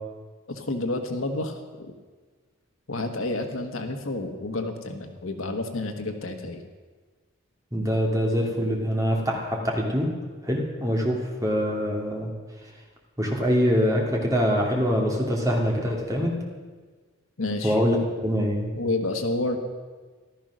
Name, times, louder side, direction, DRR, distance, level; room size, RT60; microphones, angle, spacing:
voice 1, 0.5-1.9 2.9-6.6 17.4-17.8 18.8-19.6, left 2 dB, 70° left, 5 dB, 1.4 m, -29 dB
voice 2, 7.7-10.1 10.4-12.3 13.2-16.3 17.6-18.0 18.2-18.7, equal, 15° right, -2 dB, 2.4 m, -24 dB
15.0 x 12.5 x 6.3 m, 1.4 s
head